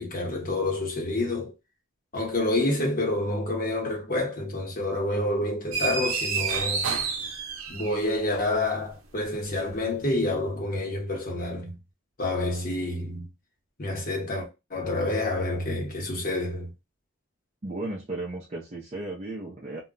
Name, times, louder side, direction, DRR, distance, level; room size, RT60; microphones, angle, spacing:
voice 1, 0.0-1.5 2.1-6.8 7.7-11.7 12.2-13.2 13.8-16.7, left 2 dB, 40° left, 0.9 m, -28 dB
sound 1, 5.7-8.2, right 5 dB, 85° right, 0.6 m, -29 dB
voice 2, 17.6-19.8, right 2 dB, 30° right, 0.5 m, -35 dB
2.2 x 2.1 x 3.7 m
head